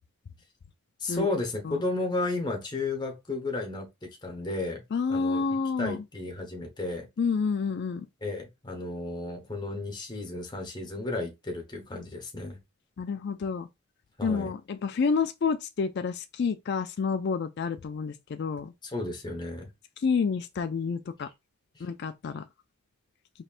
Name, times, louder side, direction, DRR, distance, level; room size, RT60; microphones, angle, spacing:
voice 1, 1.0-3.9 4.2-4.8 5.1-5.4 5.8-7.1 8.2-12.6 14.2-14.5 18.8-19.7 21.2-21.3 21.7-21.9, left 2 dB, 20° left, 1.0 m, -33 dB
voice 2, 4.9-6.0 7.2-8.1 13.0-13.7 14.2-18.7 20.0-21.3 21.8-22.4, left 5 dB, 50° left, 0.3 m, -29 dB
4.2 x 3.1 x 2.4 m
head